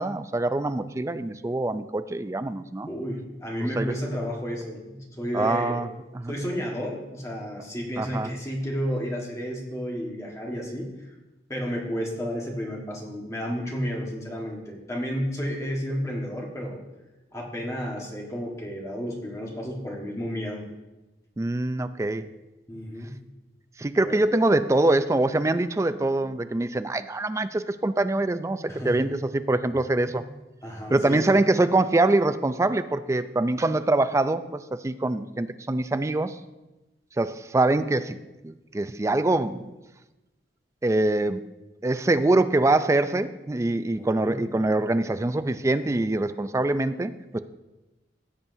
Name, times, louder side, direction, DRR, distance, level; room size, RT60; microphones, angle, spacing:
voice 1, 0.0-2.9 3.8-3.9 5.3-5.9 6.1-6.3 8.0-8.3 21.4-22.3 23.8-30.4 30.9-36.4 37.2-38.2 38.4-39.7 40.8-41.4 41.8-47.4, right 2 dB, 15° right, 11 dB, 0.3 m, -24 dB
voice 2, 2.9-5.8 6.3-11.1 11.5-16.8 17.3-20.7 22.7-23.2 24.0-24.2 28.7-29.0 30.6-31.3 44.0-44.4, equal, 15° left, -1 dB, 1.5 m, -32 dB
16.5 x 7.1 x 2.7 m, 1.0 s
head